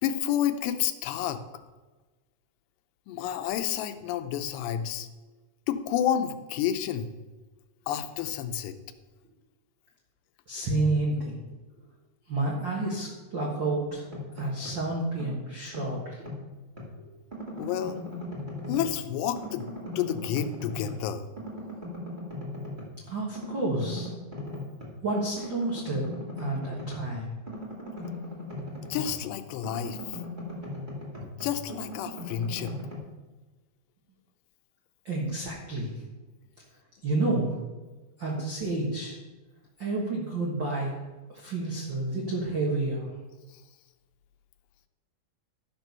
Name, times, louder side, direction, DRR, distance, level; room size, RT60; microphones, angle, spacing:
voice 1, 0.0-1.4 3.1-5.1 5.7-7.1 7.9-8.8 17.6-18.0 18.7-19.7 20.0-21.3 28.9-30.2 31.4-32.8 43.5-43.6, left 10 dB, 90° left, 9 dB, 2.9 m, -30 dB
voice 2, 10.5-11.4 12.3-14.0 14.3-16.3 17.0-17.1 23.1-24.1 25.0-26.0 26.4-27.3 35.0-35.9 37.0-37.6 38.2-39.2 39.8-40.9 41.3-43.1, right 2 dB, 75° right, -3 dB, 1.0 m, -30 dB
sound 1, 13.9-14.9 15.2-16.9 17.3-19.1 19.3-21.1 21.4-22.9 23.3-25.0 25.3-29.3 29.6-33.0, left 1 dB, 25° right, 1.1 m, -39 dB
12.5 x 6.1 x 5.4 m, 1.2 s
omnidirectional pair, 4.8 m